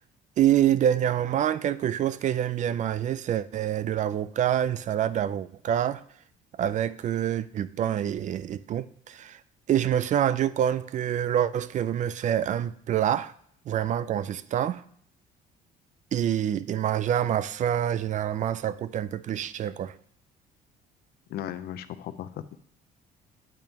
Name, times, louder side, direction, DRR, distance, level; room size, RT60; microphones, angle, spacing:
voice 1, 0.4-6.0 6.6-9.4 9.7-13.3 13.7-14.8 16.1-19.9, right 10 dB, 45° right, 0.4 m, -26 dB
voice 2, 21.3-22.6, left 11 dB, 70° left, 0.6 m, -36 dB
8.8 x 8.5 x 2.9 m
cardioid pair, 110°, 17 cm